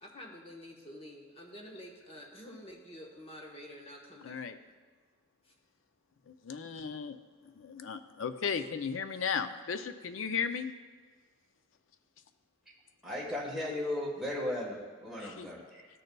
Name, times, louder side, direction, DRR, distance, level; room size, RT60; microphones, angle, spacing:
voice 1, 0.0-4.4, left 1 dB, 30° left, -1 dB, 1.2 m, -48 dB
voice 2, 4.2-4.6 6.3-7.2 7.5-10.7 15.2-15.5, left 6 dB, 85° left, 10 dB, 0.5 m, -35 dB
voice 3, 13.0-15.9, left 1 dB, ahead, -6 dB, 1.4 m, -36 dB
13.0 x 6.6 x 2.3 m, 1.5 s
head